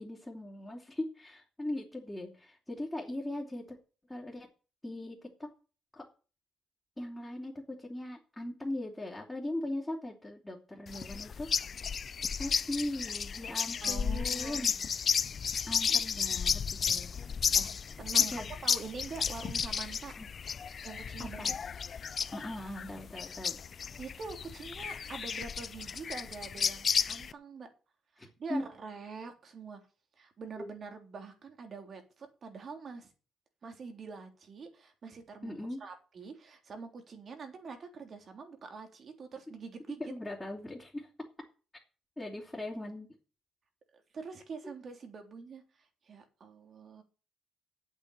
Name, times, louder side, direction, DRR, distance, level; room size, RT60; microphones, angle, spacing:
voice 1, 0.0-3.8 4.1-4.5 4.8-5.5 5.9-6.1 7.0-11.5 12.3-14.7 15.7-17.1 18.3-18.8 20.2-20.3 21.2-21.5 22.3-23.6 28.2-28.6 30.6-30.7 35.4-35.8 40.0-41.1 42.2-43.1, left 1 dB, 10° left, -2 dB, 3.2 m, -39 dB
sound 1, 10.9-27.3, left 6 dB, 45° left, 0.6 m, -33 dB
voice 2, 13.8-14.8 17.6-17.7 18.0-20.1 20.8-21.6 24.0-27.7 28.2-29.8 30.2-33.1 33.6-40.0 43.9-47.0, right 5 dB, 50° right, 5 dB, 3.5 m, -45 dB
8.8 x 8.3 x 8.6 m, 0.36 s
cardioid pair, 90°, 0 cm